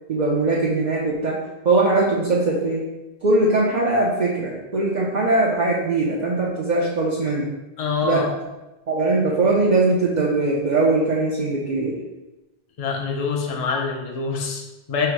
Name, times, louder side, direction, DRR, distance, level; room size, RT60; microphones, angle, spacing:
voice 1, 0.1-1.4 1.6-2.9 3.2-7.5 8.0-8.3 8.9-11.9, right 2 dB, 50° right, -4 dB, 0.7 m, -21 dB
voice 2, 7.8-8.3 12.8-15.1, left 5 dB, 45° left, 0 dB, 0.6 m, -25 dB
4.5 x 2.0 x 4.6 m, 1.0 s
omnidirectional pair, 1.0 m